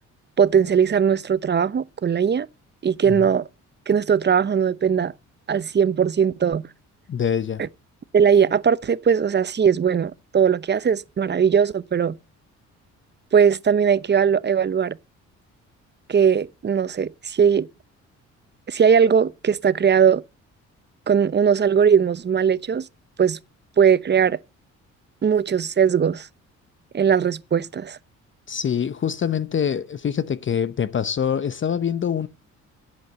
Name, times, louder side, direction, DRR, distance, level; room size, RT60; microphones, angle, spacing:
voice 1, 0.4-2.5 2.8-3.5 3.9-5.1 5.5-6.7 8.1-12.2 13.3-15.0 16.1-17.7 18.7-20.2 21.1-22.8 23.2-23.4 23.8-24.4 25.2-26.3 26.9-28.0, right 7 dB, 35° right, 0.8 m, -19 dB
voice 2, 7.1-7.6 28.5-32.3, left 8 dB, 40° left, 0.8 m, -25 dB
16.0 x 8.5 x 7.7 m
cardioid pair, 90°, 30 cm